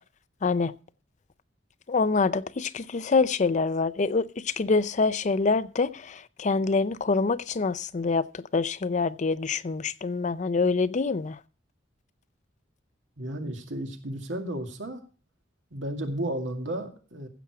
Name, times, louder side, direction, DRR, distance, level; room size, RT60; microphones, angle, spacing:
voice 1, 0.4-0.7 1.9-11.4, left 4 dB, 40° left, 0.5 m, -26 dB
voice 2, 13.2-15.0 15.7-17.3, right 1 dB, 75° right, 2.3 m, -33 dB
15.5 x 7.0 x 4.8 m
head